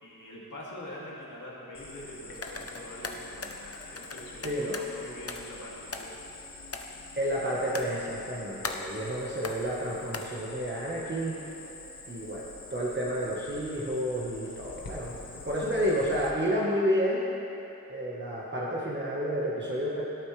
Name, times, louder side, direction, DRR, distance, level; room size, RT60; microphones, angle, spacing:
voice 1, 0.0-6.2, left 1 dB, 55° left, -6 dB, 2.7 m, -44 dB
Cricket, 1.7-16.3, left 3 dB, 75° left, 1.4 m, -46 dB
sound 1, 2.3-4.9 5.3-5.6 5.9-6.3 6.7-6.9 7.7-8.2 8.6-9.0 9.4-9.7 10.1-10.3, left 4 dB, 40° left, 0.8 m, -38 dB
voice 2, 4.4-4.8 7.2-11.4 12.1-17.2 17.9-20.0, equal, 30° right, -6 dB, 1.4 m, -30 dB
17.0 x 8.4 x 3.3 m, 2.9 s
wide cardioid pair, 75°, 36 cm